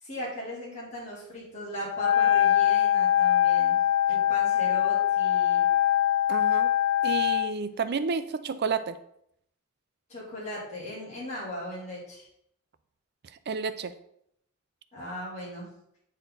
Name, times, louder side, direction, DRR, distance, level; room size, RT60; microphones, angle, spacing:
voice 1, 0.0-3.8 4.1-5.6 10.1-12.3 14.9-15.7, equal, 35° left, -6 dB, 2.7 m, -38 dB
Wind instrument woodwind instrument, 1.9-7.5, left 11 dB, 90° left, 0.3 m, -23 dB
voice 2, 6.3-6.7 7.0-9.0 13.5-13.9, right 5 dB, 50° right, 12 dB, 0.5 m, -30 dB
9.0 x 4.3 x 3.9 m, 0.74 s
head